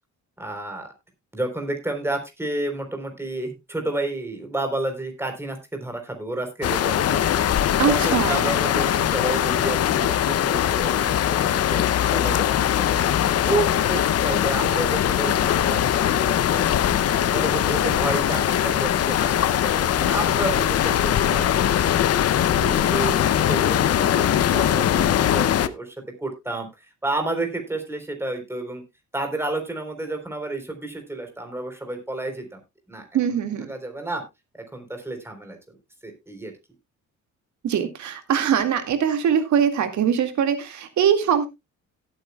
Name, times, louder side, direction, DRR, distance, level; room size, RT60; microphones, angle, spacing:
voice 1, 0.4-0.9 1.3-7.5 7.9-11.8 12.1-13.2 13.4-16.7 17.1-22.0 22.5-28.8 29.1-32.6 32.9-33.1 33.7-34.2 34.7-35.8 36.0-36.5, right 2 dB, 10° right, 4 dB, 3.8 m, -31 dB
sound 1, 6.6-25.7, left 10 dB, 55° left, 0.7 m, -21 dB
voice 2, 7.8-8.4 33.1-33.7 37.6-41.5, right 8 dB, 70° right, 7 dB, 2.1 m, -22 dB
17.5 x 8.7 x 2.3 m, 0.23 s
cardioid pair, 90°, 30 cm